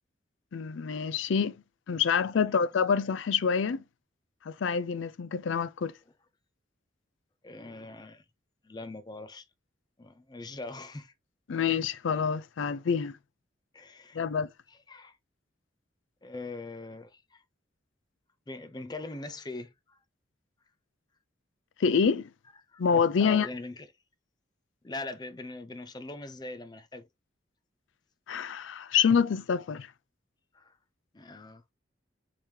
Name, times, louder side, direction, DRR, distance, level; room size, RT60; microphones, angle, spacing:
voice 1, 0.5-1.6 1.9-3.8 4.5-5.9 11.5-13.2 14.1-14.5 21.8-22.3 22.8-23.5 28.3-29.9, left 6 dB, 80° left, 0.4 m, -27 dB
voice 2, 7.4-8.2 8.6-9.5 10.0-11.1 13.7-14.3 14.7-15.2 16.2-17.4 18.5-20.0 22.7-22.8 23.2-23.9 24.8-27.1 30.5-30.8 31.1-31.6, left 2 dB, 20° left, 0.5 m, -41 dB
4.8 x 3.6 x 2.8 m
head